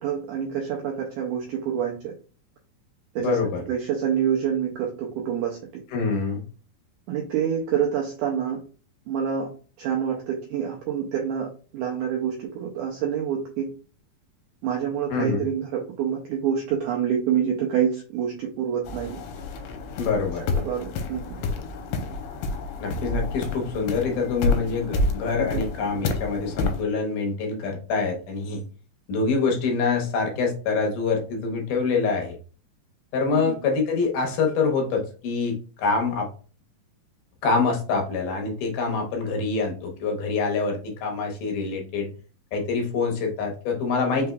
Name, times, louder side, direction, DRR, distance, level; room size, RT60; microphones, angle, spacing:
voice 1, 0.0-2.1 3.1-5.6 7.1-8.6 9.1-9.5 9.8-13.7 14.6-19.2 20.5-21.2 25.4-25.6 33.3-33.6, right 8 dB, 90° right, 0 dB, 1.7 m, -27 dB
voice 2, 3.2-3.6 5.9-6.4 15.1-15.5 20.0-20.4 22.8-28.6 29.1-32.4 33.1-36.3 37.4-42.1 42.5-44.3, left 4 dB, 70° left, 1 dB, 2.3 m, -25 dB
sound 1, 18.9-26.8, left 3 dB, 85° left, 2.5 m, -29 dB
5.7 x 3.4 x 2.3 m, 0.38 s
omnidirectional pair, 4.3 m